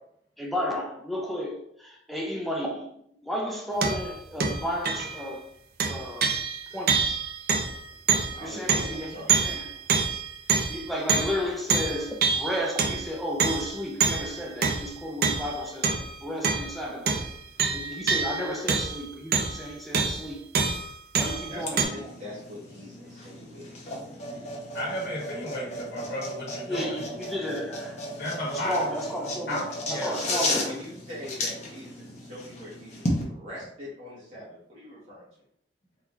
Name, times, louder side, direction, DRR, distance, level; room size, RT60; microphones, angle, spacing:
voice 1, 0.4-5.4 5.8-6.4 6.7-7.2 8.4-9.7 10.7-17.3 17.7-20.4 21.2-22.1 26.7-28.0 28.5-30.6, equal, ahead, 0.4 m, -33 dB
sound 1, 3.8-4.1 4.4-5.2 5.8-11.4 11.7-13.1 13.4-16.2 16.4-16.8 17.1-19.7 19.9-20.2 20.5-21.8, right 5 dB, 60° right, 0.5 m, -26 dB
voice 2, 8.3-9.5 21.5-23.7 30.4-35.2, left 1 dB, 40° right, 1.1 m, -42 dB
sound 2, 21.6-33.2, left 1 dB, 40° left, 0.9 m, -34 dB
voice 3, 24.7-27.0 28.2-28.8 29.5-30.2, equal, 65° left, 1.5 m, -33 dB
3.8 x 2.9 x 3.0 m
head